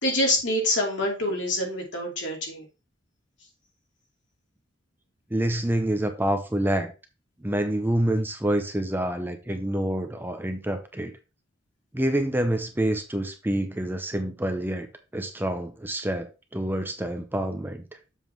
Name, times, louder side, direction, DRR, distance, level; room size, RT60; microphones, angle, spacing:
voice 1, 0.0-2.7, left 1 dB, 70° left, 2.7 m, -26 dB
voice 2, 5.3-6.9 7.4-11.1 11.9-14.9 15.1-17.8, right 1 dB, 10° right, 0.7 m, -27 dB
7.2 x 4.0 x 4.5 m
head